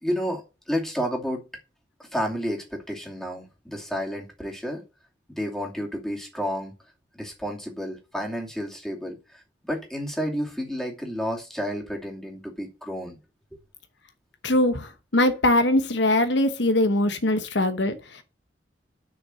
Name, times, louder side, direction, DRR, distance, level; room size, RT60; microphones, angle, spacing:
voice 1, 0.0-1.4 2.0-4.8 5.4-6.7 7.2-13.2 13.5-13.6, equal, ahead, 2.6 m, -31 dB
voice 2, 14.4-18.2, left 1 dB, 70° left, 1.1 m, -22 dB
6.9 x 6.3 x 7.7 m
head